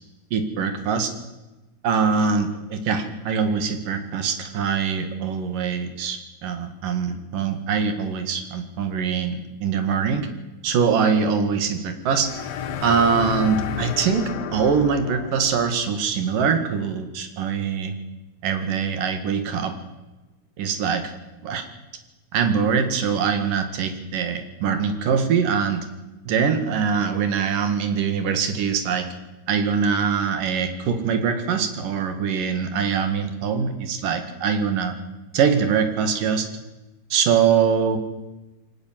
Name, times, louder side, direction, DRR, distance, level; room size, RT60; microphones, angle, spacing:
voice 1, 0.3-1.1 1.8-10.3 10.6-12.3 12.8-18.0 18.4-19.7 20.6-21.1 21.4-21.7 22.3-25.9 26.3-29.1 29.5-34.9 35.3-36.5 37.1-38.0, right 6 dB, 85° right, 7 dB, 3.6 m, -23 dB
sound 1, 12.1-15.8, left 8 dB, 60° left, 2.0 m, -31 dB
24.0 x 18.5 x 7.5 m, 1.1 s
omnidirectional pair, 3.7 m